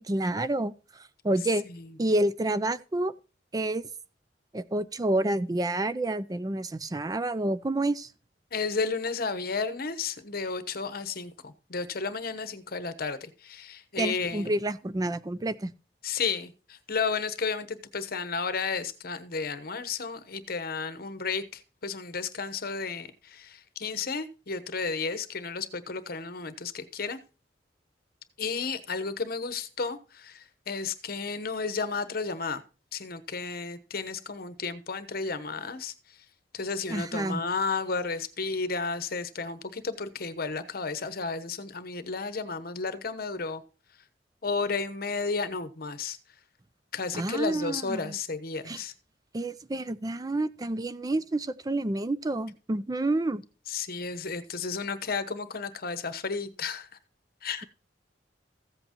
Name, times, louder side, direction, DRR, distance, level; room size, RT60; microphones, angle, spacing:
voice 1, 0.0-1.6 2.0-3.1 3.5-3.8 4.5-8.1 14.0-15.7 36.9-37.4 47.1-48.2 48.7-48.8 49.3-53.4, right 2 dB, 20° right, 0.4 m, -29 dB
voice 2, 8.5-14.5 16.0-27.2 28.4-32.6 32.9-35.9 36.5-43.6 44.4-46.2 46.9-48.9 53.7-56.9 57.4-57.7, left 4 dB, 55° left, 1.0 m, -33 dB
15.0 x 7.9 x 2.9 m
head